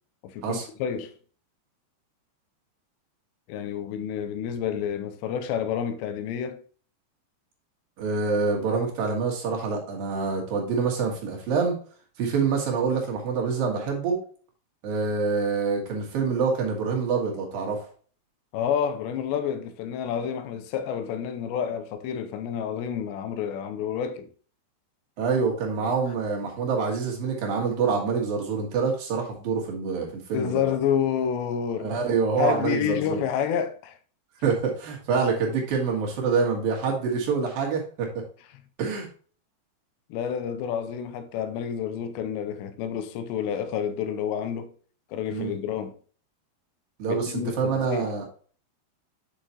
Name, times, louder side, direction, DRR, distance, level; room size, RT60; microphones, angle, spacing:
voice 1, 0.2-1.2 3.5-6.6 18.5-24.3 25.8-25.9 30.3-31.9 32.4-34.0 40.1-44.7 45.1-46.0 47.1-48.1, left 8 dB, 80° left, 2.7 m, -29 dB
voice 2, 8.0-11.7 12.2-14.2 14.8-17.9 25.2-30.6 31.8-33.2 34.4-38.2 38.8-39.1 45.3-45.5 47.0-48.2, right 5 dB, 60° right, 3.2 m, -26 dB
8.3 x 6.1 x 2.9 m
omnidirectional pair, 5.3 m